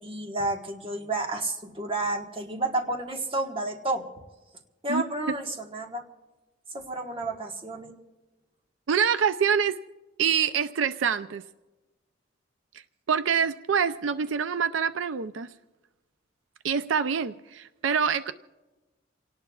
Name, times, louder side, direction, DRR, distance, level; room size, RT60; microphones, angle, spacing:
voice 1, 0.0-4.1 4.8-6.0 6.7-7.9, right 2 dB, 30° right, 2 dB, 1.4 m, -31 dB
voice 2, 8.9-9.8 10.2-11.4 13.1-15.5 16.6-18.3, right 7 dB, 85° right, 11 dB, 0.5 m, -25 dB
28.5 x 18.5 x 2.4 m, 1.1 s
head